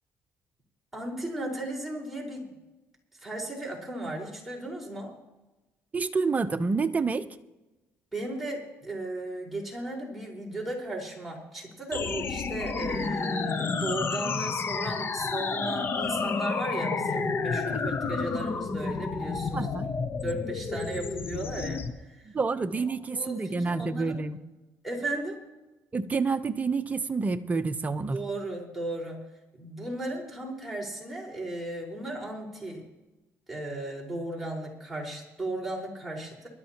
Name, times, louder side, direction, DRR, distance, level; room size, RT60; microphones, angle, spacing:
voice 1, 0.9-2.5 3.2-5.1 8.1-19.8 20.2-22.3 22.9-24.2 24.8-25.4 28.1-29.2 29.5-32.8 33.5-36.5, right 1 dB, ahead, 4.9 m, -36 dB
voice 2, 5.9-7.3 17.7-17.8 19.5-19.9 22.3-24.4 25.9-28.2, right 4 dB, 25° right, 0.8 m, -28 dB
sound 1, 11.9-21.9, left 4 dB, 40° left, 1.0 m, -30 dB
22.5 x 12.5 x 3.0 m
supercardioid pair, 85°, 6 cm